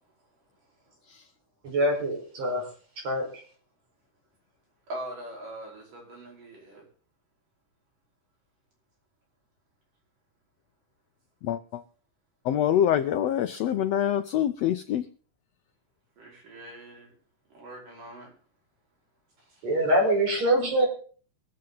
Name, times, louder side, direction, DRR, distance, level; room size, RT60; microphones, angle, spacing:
voice 1, 1.6-2.7 3.0-3.4 19.6-20.9, right 1 dB, 55° right, 0 dB, 5.8 m, -24 dB
voice 2, 4.9-6.9 16.2-17.1 17.5-18.3, right 1 dB, 80° right, -2 dB, 6.8 m, -42 dB
voice 3, 11.4-11.8 12.4-15.0, left 10 dB, 90° left, 9 dB, 1.4 m, -25 dB
23.0 x 7.7 x 3.9 m, 0.41 s
omnidirectional pair, 3.7 m